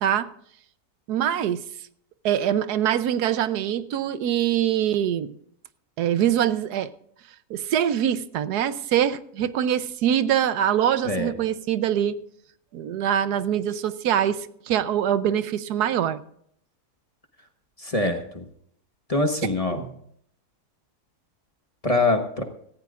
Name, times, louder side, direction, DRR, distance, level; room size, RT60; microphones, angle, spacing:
voice 1, 1.1-1.6 2.2-5.3 6.0-6.9 7.5-12.2 12.7-16.2 19.7-19.9, right 10 dB, 85° right, 14 dB, 1.3 m, -24 dB
voice 2, 17.8-18.4 19.1-19.8 21.8-22.4, left 2 dB, 25° left, 5 dB, 1.1 m, -24 dB
17.5 x 15.0 x 2.5 m, 0.67 s
omnidirectional pair, 1.7 m